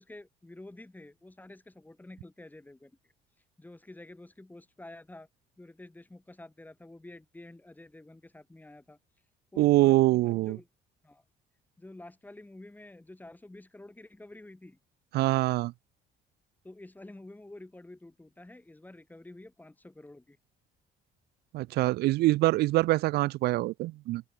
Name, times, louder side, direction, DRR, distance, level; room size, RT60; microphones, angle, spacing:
voice 1, 0.0-3.0 3.6-5.3 5.6-9.0 9.5-10.7 11.0-11.2 11.8-14.8 16.6-20.4, left 2 dB, 10° left, 5.8 m, -49 dB
voice 2, 9.6-10.6 15.1-15.7 21.5-24.2, right 18 dB, 70° right, 0.4 m, -24 dB
open air
cardioid pair, 110°, 17 cm